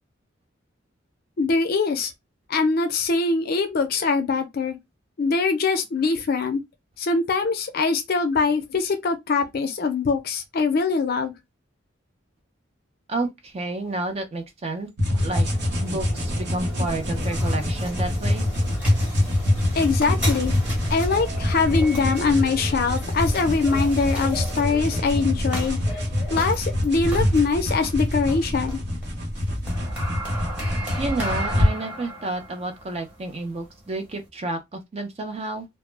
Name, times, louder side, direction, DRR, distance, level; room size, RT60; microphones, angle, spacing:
voice 1, 1.4-2.1 2.5-4.8 5.2-6.6 7.0-11.3 19.7-20.5 20.9-25.8 26.3-28.8, left 4 dB, 50° left, 0.4 m, -23 dB
voice 2, 13.1-15.5 15.8-18.4 31.0-35.7, right 2 dB, 30° right, 0.4 m, -30 dB
sound 1, 15.0-31.7, left 1 dB, 60° right, 0.8 m, -25 dB
sound 2, 15.2-34.3, equal, 5° right, 0.9 m, -35 dB
2.0 x 2.0 x 3.1 m
head